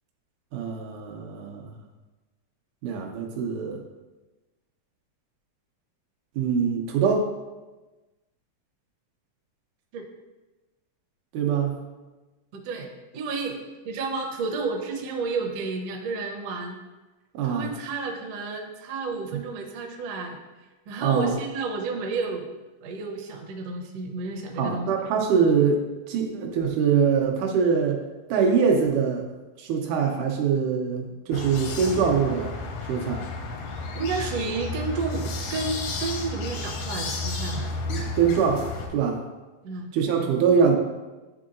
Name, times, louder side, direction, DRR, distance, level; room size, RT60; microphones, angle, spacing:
voice 1, 0.5-1.7 2.8-3.8 6.4-7.3 11.3-11.8 17.3-17.7 21.0-21.3 24.6-28.0 28.3-29.2 29.6-32.6 32.9-33.3 37.9-39.2 39.9-40.7, right 6 dB, 85° right, 1 dB, 2.2 m, -23 dB
voice 2, 12.5-16.8 17.4-20.4 20.9-22.5 22.8-24.9 33.9-37.7 39.6-39.9, right 4 dB, 70° right, 2 dB, 1.6 m, -31 dB
sound 1, 31.3-38.9, left 3 dB, 85° left, 2.1 m, -32 dB
10.5 x 3.7 x 2.5 m, 1.2 s
omnidirectional pair, 3.5 m